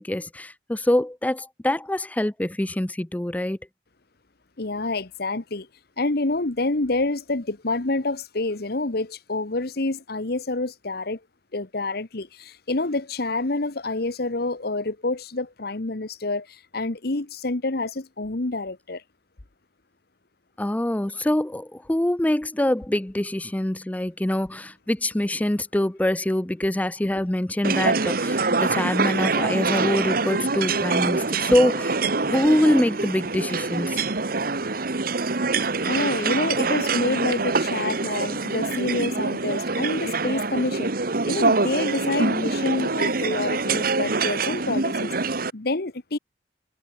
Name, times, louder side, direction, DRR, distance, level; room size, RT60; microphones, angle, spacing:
voice 1, 0.0-3.6 20.6-32.0 32.3-34.0, left 1 dB, 10° left, 0.5 m, -24 dB
voice 2, 4.6-5.7 6.0-11.2 11.5-19.0 35.9-40.9 41.3-46.2, left 2 dB, 60° left, 1.3 m, -27 dB
sound 1, 27.6-45.5, right 3 dB, 55° right, 1.6 m, -25 dB
head